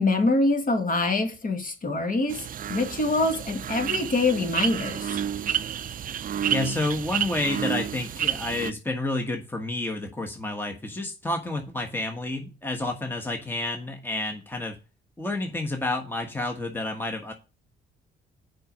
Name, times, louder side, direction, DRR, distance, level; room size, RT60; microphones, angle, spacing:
voice 1, 0.0-2.4 2.7-5.2, left 2 dB, 45° left, 1.9 m, -24 dB
sound 1, 2.3-8.7, right 9 dB, 45° right, 0.5 m, -30 dB
voice 2, 6.5-14.8 15.2-17.3, left 2 dB, 10° left, 1.3 m, -30 dB
6.9 x 5.2 x 6.1 m
cardioid pair, 90°, 20 cm